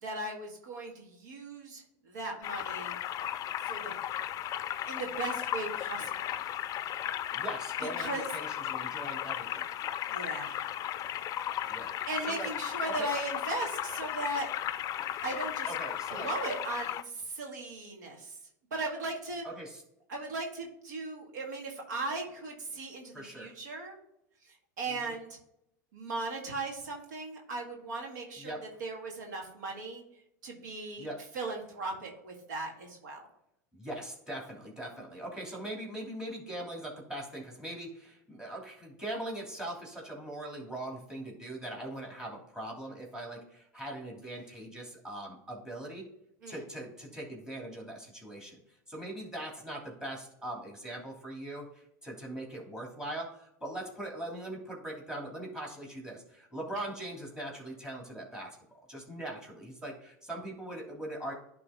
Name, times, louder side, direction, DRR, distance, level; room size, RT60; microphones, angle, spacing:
voice 1, 0.0-3.0 3.6-4.0 4.9-6.3 7.1-7.3 7.8-8.2 10.1-10.7 11.6-11.7 12.1-14.5 15.2-15.7 16.1-18.4 18.7-19.4 20.1-24.0 24.4-25.4 25.9-30.0 30.4-31.1 31.3-33.3 46.4-46.6, right 2 dB, 80° right, 1 dB, 1.9 m, -38 dB
sound 1, 2.4-17.0, left 11 dB, 40° left, 0.4 m, -35 dB
voice 2, 7.3-9.7 11.6-12.5 12.9-13.1 15.7-16.3 19.4-19.8 23.1-23.5 24.9-25.1 28.4-28.6 31.0-31.2 33.7-46.0 46.5-48.6 48.9-58.6 58.9-61.3, right 1 dB, 5° right, -1 dB, 2.8 m, -41 dB
11.0 x 3.7 x 3.6 m, 0.78 s
hypercardioid pair, 100°, 10 cm